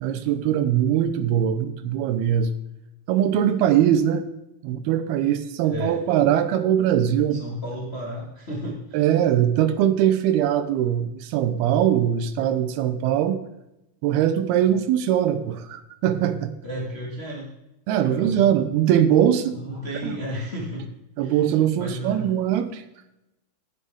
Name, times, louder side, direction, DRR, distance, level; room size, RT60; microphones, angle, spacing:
voice 1, 0.0-2.5 3.1-4.2 4.6-7.4 8.9-13.4 14.0-16.5 17.9-19.5 20.0-20.2 21.2-22.8, right 10 dB, 80° right, 10 dB, 2.6 m, -21 dB
voice 2, 5.6-6.0 7.3-9.1 16.6-17.5 18.1-18.4 19.5-20.9 21.2-21.4 21.7-22.2, equal, 85° left, -3 dB, 0.5 m, -33 dB
11.0 x 9.4 x 3.6 m, 0.89 s
omnidirectional pair, 4.7 m